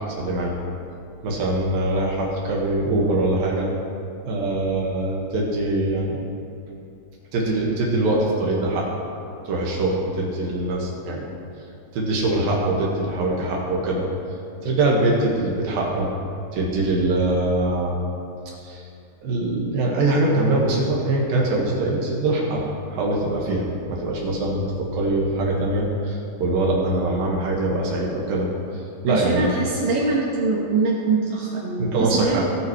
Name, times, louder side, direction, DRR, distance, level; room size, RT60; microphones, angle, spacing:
voice 1, 0.2-0.6 1.2-3.7 4.2-6.2 7.3-8.9 9.4-11.2 11.9-14.0 14.6-16.1 16.5-18.0 18.5-18.9 19.2-22.6 22.9-28.5 29.0-29.5 31.8-32.4, right 2 dB, 65° right, -2 dB, 2.6 m, -23 dB
voice 2, 29.1-32.4, right 3 dB, 90° right, -4 dB, 1.8 m, -23 dB
19.5 x 9.0 x 3.1 m, 2.6 s
omnidirectional pair, 5.6 m